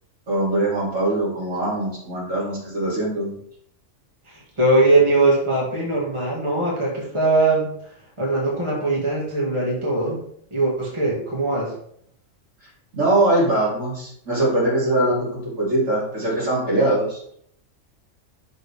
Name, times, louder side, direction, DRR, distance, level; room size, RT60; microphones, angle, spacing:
voice 1, 0.3-3.4 12.9-17.2, right 1 dB, 75° right, -7 dB, 3.4 m, -22 dB
voice 2, 4.3-7.7 8.2-10.2 10.5-11.7, right 2 dB, 25° right, -4 dB, 2.0 m, -21 dB
11.0 x 3.9 x 3.5 m, 0.66 s
omnidirectional pair, 1.3 m